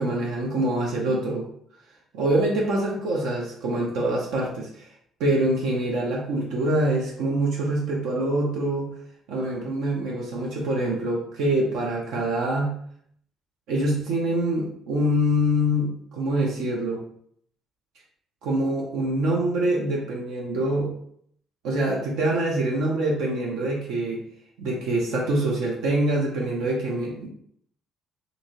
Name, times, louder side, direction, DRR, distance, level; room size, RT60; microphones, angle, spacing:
voice 1, 0.0-1.5 2.1-4.9 5.2-8.9 9.3-12.7 13.7-17.0 18.4-20.9 21.6-24.2 24.6-27.3, right 1 dB, 75° right, -2 dB, 0.4 m, -25 dB
2.6 x 2.6 x 2.8 m, 0.66 s
hypercardioid pair, 55°, 0 cm